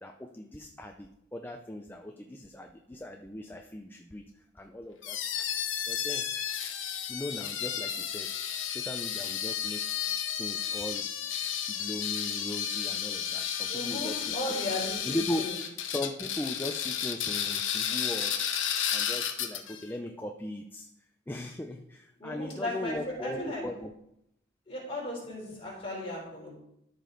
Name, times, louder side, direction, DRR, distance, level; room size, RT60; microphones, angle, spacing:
voice 1, 0.0-5.5 5.9-6.3 7.1-8.3 8.7-9.8 10.3-11.1 11.7-14.6 15.1-15.5 15.9-18.5 18.9-20.9 21.3-23.9, left 1 dB, 10° left, 4 dB, 0.4 m, -38 dB
sound 1, 5.0-19.8, left 9 dB, 80° left, 0.9 m, -32 dB
voice 2, 13.7-15.5 22.2-23.6 24.7-26.6, left 1 dB, 30° left, -4 dB, 3.5 m, -36 dB
13.5 x 5.1 x 3.9 m, 0.78 s
head